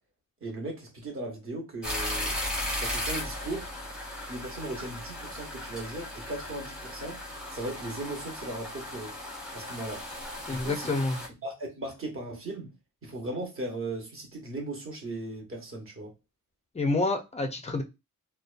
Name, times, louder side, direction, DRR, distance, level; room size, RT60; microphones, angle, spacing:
voice 1, 0.4-2.4 2.8-3.7 4.3-7.2 7.5-9.1 9.5-10.1 10.5-10.9 11.4-12.7 13.0-16.1, right 2 dB, 40° right, 0.9 m, -37 dB
sound 1, 1.8-11.3, left 1 dB, ahead, 0.7 m, -36 dB
voice 2, 10.5-11.2 16.7-17.8, left 3 dB, 20° left, 0.3 m, -28 dB
2.6 x 2.1 x 2.4 m
wide cardioid pair, 155°, 35 cm